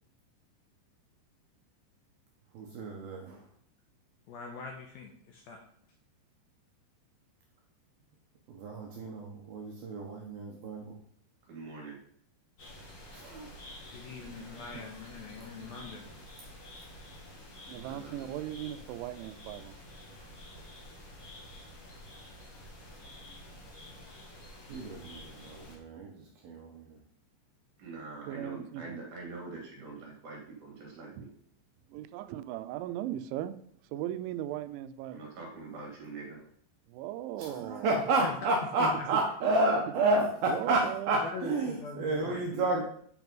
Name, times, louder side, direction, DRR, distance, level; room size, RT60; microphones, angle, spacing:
voice 1, 2.5-3.4 8.5-10.9 13.1-13.5 14.2-14.3 15.6-15.9 24.7-27.0 37.4-42.8, right 2 dB, 70° right, 0 dB, 2.5 m, -31 dB
voice 2, 4.3-5.6 13.9-16.1 38.2-38.4 38.8-39.1 41.3-42.3, left 5 dB, 75° left, 1 dB, 2.3 m, -42 dB
voice 3, 11.4-12.0 17.6-18.4 27.8-31.3 35.1-36.5 42.1-42.8, right 4 dB, 45° right, -1 dB, 3.6 m, -44 dB
sound 1, 12.6-25.8, left 1 dB, 45° left, 2.1 m, -49 dB
voice 4, 17.7-19.8 28.3-29.0 31.9-33.6 33.9-35.2 36.9-37.9 40.5-41.2, right 12 dB, 90° right, 12 dB, 3.0 m, -38 dB
8.8 x 6.0 x 5.3 m, 0.62 s
omnidirectional pair, 5.3 m